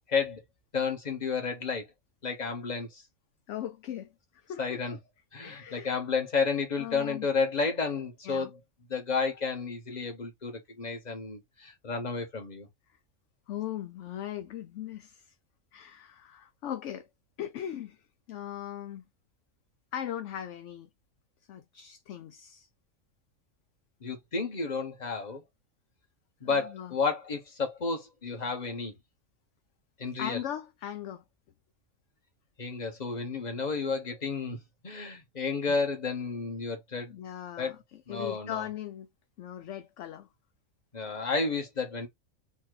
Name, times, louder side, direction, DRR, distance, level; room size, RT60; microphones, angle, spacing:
voice 1, 0.1-0.4 0.7-1.8 2.2-3.0 4.6-5.0 5.3-8.6 8.9-12.7 24.0-25.4 26.4-28.9 30.0-30.4 32.6-37.1 37.6-37.7 38.1-38.6 40.9-42.1, left 4 dB, 30° left, 1.3 m, -31 dB
voice 2, 3.5-5.0 5.4-6.0 6.7-7.3 8.2-8.5 13.5-15.3 15.7-17.1 17.4-18.0 18.3-19.0 19.9-20.9 21.5-22.7 26.4-26.9 30.2-31.2 37.1-39.1 39.4-40.3, left 11 dB, 65° left, 0.8 m, -39 dB
4.2 x 2.4 x 4.7 m
omnidirectional pair, 1.5 m